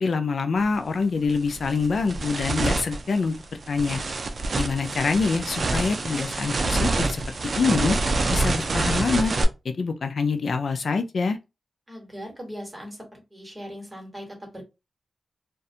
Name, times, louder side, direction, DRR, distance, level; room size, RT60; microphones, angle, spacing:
voice 1, 0.0-3.3 3.7-4.0 4.6-7.2 7.6-8.0 8.3-9.3 9.6-11.4, left 4 dB, 70° left, 0.3 m, -25 dB
sound 1, 0.6-0.8 1.2-9.4, right 3 dB, 55° right, 0.4 m, -27 dB
voice 2, 11.9-14.6, equal, 15° right, 1.3 m, -39 dB
2.4 x 2.2 x 2.7 m
cardioid pair, 70°, 0 cm